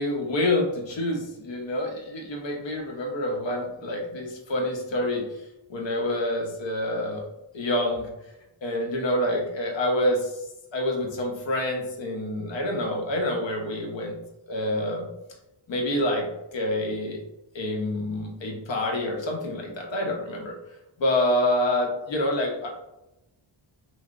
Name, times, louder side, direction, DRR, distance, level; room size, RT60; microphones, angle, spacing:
voice 1, 0.0-5.2 5.7-7.2 7.5-8.1 8.6-10.4 10.7-14.2 14.5-15.1 15.7-17.2 17.5-20.5 21.0-22.7, left 1 dB, 65° left, 0 dB, 0.8 m, -27 dB
3.0 x 2.0 x 2.4 m, 0.92 s
cardioid pair, 60°, 49 cm